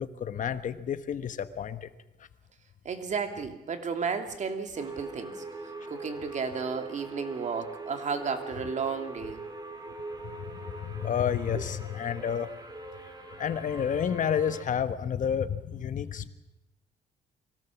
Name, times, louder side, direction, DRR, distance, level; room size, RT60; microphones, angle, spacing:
voice 1, 0.0-1.9 10.8-12.5 13.4-16.3, left 8 dB, 55° left, 12 dB, 1.3 m, -30 dB
voice 2, 2.8-9.4 11.5-11.6, right 5 dB, 50° right, 7 dB, 2.7 m, -33 dB
sound 1, 4.7-14.6, right 2 dB, 25° right, 3.4 m, -42 dB
23.5 x 17.0 x 7.2 m, 0.96 s
cardioid pair, 95°, 16 cm